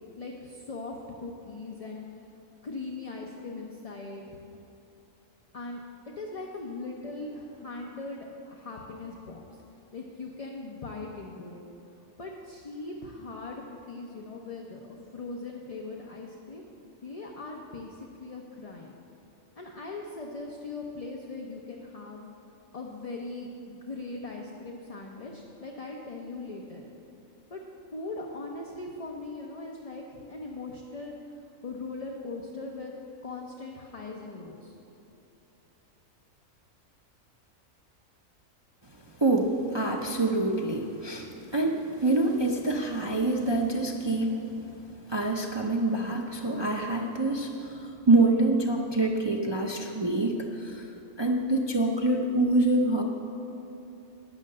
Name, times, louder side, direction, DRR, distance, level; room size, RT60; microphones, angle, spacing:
voice 1, 0.2-2.3 2.6-4.3 5.5-5.8 6.2-11.6 12.2-16.6 17.0-18.9 19.6-22.2 22.7-26.8 27.5-27.6 27.9-34.7, left 3 dB, 35° left, 0 dB, 0.6 m, -40 dB
voice 2, 39.2-44.4 45.1-50.9 51.2-53.0, right 2 dB, 35° right, 0 dB, 0.4 m, -26 dB
9.7 x 6.4 x 7.6 m, 3.0 s
omnidirectional pair, 1.4 m